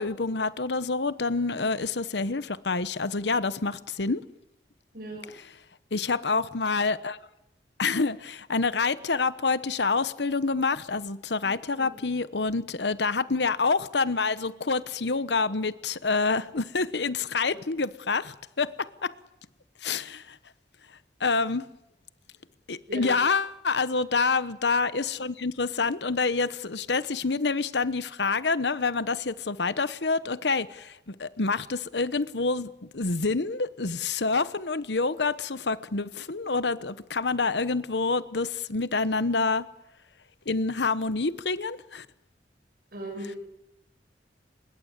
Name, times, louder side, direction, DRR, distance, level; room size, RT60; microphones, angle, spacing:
voice 1, 0.0-4.2 5.9-7.2 7.8-19.1 19.8-20.4 21.2-21.6 22.7-39.7 40.5-42.1, left 4 dB, 75° left, 1.1 m, -27 dB
voice 2, 4.9-5.3 11.4-11.9 22.9-23.2 42.9-43.4, right 1 dB, 55° right, 7.6 m, -38 dB
25.0 x 21.5 x 8.2 m
head